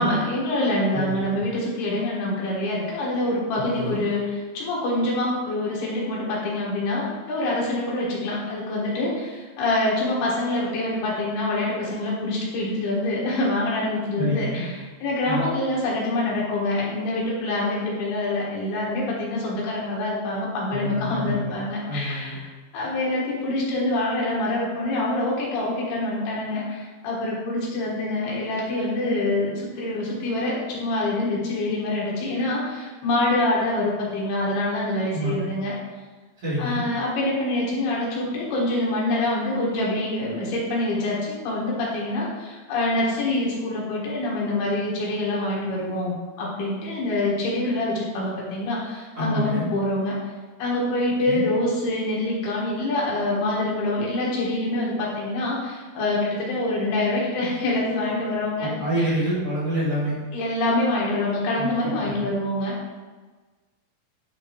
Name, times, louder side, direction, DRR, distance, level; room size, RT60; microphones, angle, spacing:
voice 1, 0.0-22.5 22.7-35.7 36.6-50.2 50.6-58.7 59.0-59.1 60.3-62.7, left 2 dB, 85° left, -4 dB, 3.4 m, -25 dB
voice 2, 0.9-1.4 3.5-4.0 14.2-14.7 15.2-15.5 20.7-21.5 21.9-22.4 35.1-35.5 36.4-36.8 49.1-49.7 51.2-51.4 58.6-60.2 61.5-62.3, equal, 40° right, -12 dB, 2.6 m, -28 dB
10.0 x 3.5 x 3.0 m, 1.3 s
omnidirectional pair, 4.4 m